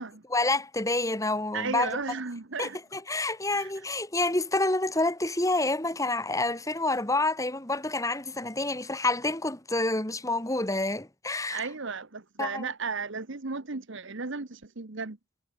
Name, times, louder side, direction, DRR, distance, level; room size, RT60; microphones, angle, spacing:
voice 1, 0.3-2.0 2.6-11.7 12.4-12.7, left 2 dB, 15° left, 3.0 m, -28 dB
voice 2, 1.5-2.8 3.5-3.7 11.5-15.2, right 4 dB, 60° right, 1.2 m, -34 dB
head